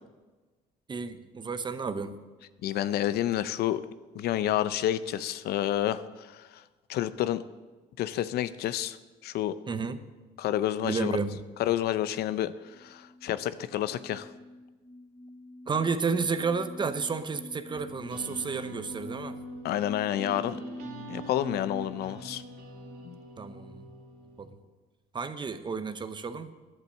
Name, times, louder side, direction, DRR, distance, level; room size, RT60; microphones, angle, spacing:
voice 1, 0.9-2.2 9.7-10.0 10.8-11.4 15.7-19.4 23.4-23.9 24.4-24.6 25.1-26.5, right 5 dB, 25° right, 11 dB, 0.8 m, -31 dB
voice 2, 2.6-3.8 4.1-6.5 6.9-7.4 8.0-9.0 9.2-9.6 10.4-11.1 11.6-12.5 12.8-14.3 19.6-20.6 21.1-22.4 23.0-23.2, left 12 dB, 70° left, 14 dB, 0.6 m, -29 dB
sound 1, 12.7-21.8, left 1 dB, 15° left, 2.1 m, -45 dB
sound 2, 17.7-24.5, right 1 dB, 70° right, 2.4 m, -45 dB
11.0 x 8.3 x 6.6 m, 1.2 s
cardioid pair, 110°, 17 cm